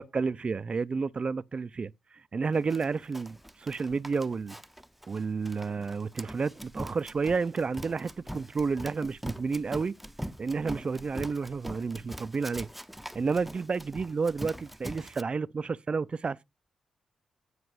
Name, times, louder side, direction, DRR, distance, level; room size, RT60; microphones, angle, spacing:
voice 1, 0.0-1.9 2.3-4.6 5.1-9.9 10.4-12.7 13.1-16.4, right 4 dB, 45° right, 0.4 m, -31 dB
Run, 2.7-15.2, equal, 5° right, 0.6 m, -42 dB
9.6 x 4.9 x 4.7 m
supercardioid pair, 45°, 2 cm